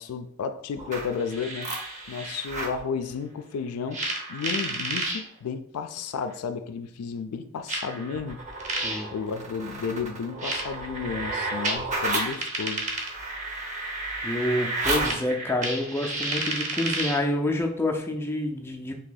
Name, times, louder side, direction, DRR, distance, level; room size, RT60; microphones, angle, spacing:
voice 1, 0.0-1.7 2.1-8.4 9.1-12.9, left 6 dB, 85° left, 0.4 m, -32 dB
sound 1, 0.8-2.8 3.9-5.2 6.3-6.4 7.7-17.3, right 2 dB, 35° right, 0.7 m, -31 dB
voice 2, 14.2-18.9, left 1 dB, 10° left, 0.4 m, -28 dB
2.8 x 2.7 x 3.8 m
head